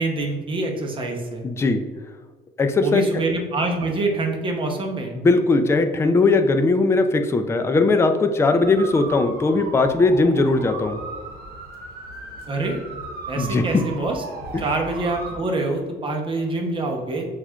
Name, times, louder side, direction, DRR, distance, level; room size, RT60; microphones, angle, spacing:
voice 1, 0.0-1.4 2.8-5.1 12.5-12.8 13.3-14.2 14.6-17.3, right 2 dB, 30° right, 1 dB, 0.7 m, -25 dB
voice 2, 1.4-1.8 2.6-3.0 5.1-11.0 13.4-13.6 14.5-14.6, left 3 dB, 15° left, 7 dB, 0.3 m, -19 dB
sound 1, 8.5-15.4, right 3 dB, 65° right, 0.9 m, -36 dB
6.0 x 2.4 x 2.3 m, 1.4 s
cardioid pair, 110°, 17 cm